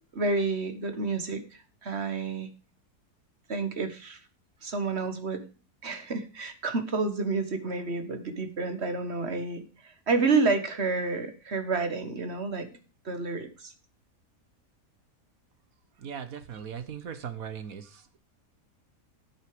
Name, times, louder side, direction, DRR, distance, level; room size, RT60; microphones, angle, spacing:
voice 1, 0.1-2.5 3.5-4.2 4.6-5.4 5.8-12.7 13.0-13.7, right 3 dB, 40° right, 9 dB, 1.6 m, -29 dB
voice 2, 16.0-18.2, right 8 dB, 60° right, 11 dB, 1.5 m, -39 dB
10.5 x 8.2 x 5.0 m, 0.34 s
omnidirectional pair, 1.8 m